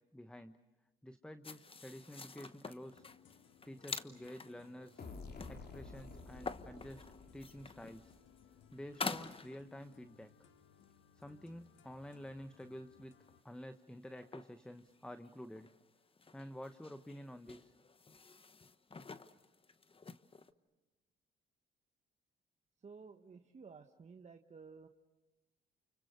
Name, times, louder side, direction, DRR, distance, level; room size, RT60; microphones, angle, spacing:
voice 1, 0.1-0.6 1.0-3.1 3.6-5.0 5.5-7.0 7.3-8.1 8.7-10.3 11.1-13.1 13.4-15.7 16.3-17.7, equal, 5° left, 9 dB, 1.0 m, -50 dB
sound 1, 1.4-10.2 10.8-10.9 11.5-12.2 12.5-12.8 13.2-13.8 14.2-20.5, left 4 dB, 30° left, 1.2 m, -49 dB
sound 2, 2.8-13.4, left 9 dB, 75° left, 1.3 m, -65 dB
sound 3, 5.0-8.6, left 3 dB, 50° left, 3.5 m, -51 dB
voice 2, 22.8-24.9, right 5 dB, 35° right, 5 dB, 1.3 m, -54 dB
29.5 x 29.0 x 6.6 m, 1.1 s
cardioid pair, 90°, 20 cm